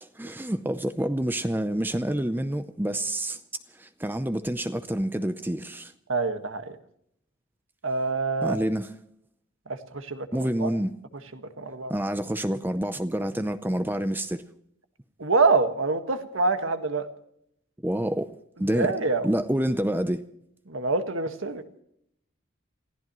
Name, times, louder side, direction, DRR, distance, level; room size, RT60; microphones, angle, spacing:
voice 1, 0.0-3.4 3.8-5.9 8.4-8.9 10.3-10.9 11.9-14.4 17.8-18.3 18.6-18.9 19.2-20.2, right 1 dB, 10° right, 0.6 m, -27 dB
voice 2, 6.1-6.8 7.8-8.6 9.7-10.3 10.6-10.7 11.3-11.9 15.2-17.1 18.7-19.3 20.7-21.6, right 3 dB, 75° right, 1.7 m, -26 dB
29.0 x 16.0 x 3.1 m
head